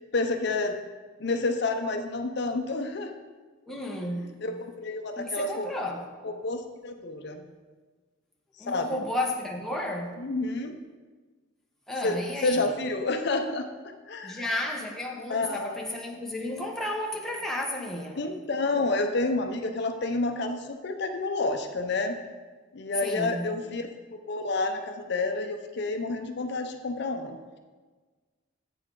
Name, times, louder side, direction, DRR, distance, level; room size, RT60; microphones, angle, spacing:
voice 1, 0.1-0.7 1.2-3.1 4.4-5.7 6.2-7.5 8.7-9.0 10.2-10.8 12.0-13.7 14.1-14.4 15.3-15.9 18.2-22.2 22.7-27.4, left 3 dB, 55° left, 5 dB, 0.6 m, -29 dB
voice 2, 3.7-4.3 5.2-6.0 8.6-10.2 11.9-12.6 14.2-18.3 23.0-23.5, left 1 dB, ahead, -1 dB, 0.8 m, -32 dB
8.3 x 6.8 x 3.8 m, 1.4 s
head